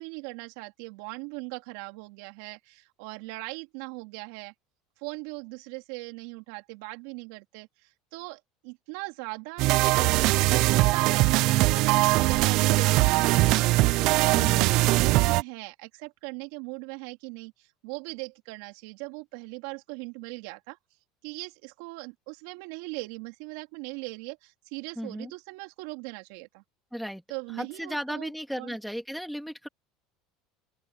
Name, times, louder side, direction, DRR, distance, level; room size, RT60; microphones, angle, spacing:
voice 1, 0.0-4.5 5.0-13.7 14.0-20.8 21.2-26.6 27.3-28.3 28.6-28.7, right 26 dB, 70° right, 3.8 m, -40 dB
sound 1, 9.6-15.4, right 19 dB, 55° right, 0.5 m, -21 dB
voice 2, 25.0-25.3 26.9-27.2 27.5-29.7, equal, ahead, 3.0 m, -35 dB
open air
cardioid pair, 155°, 0 cm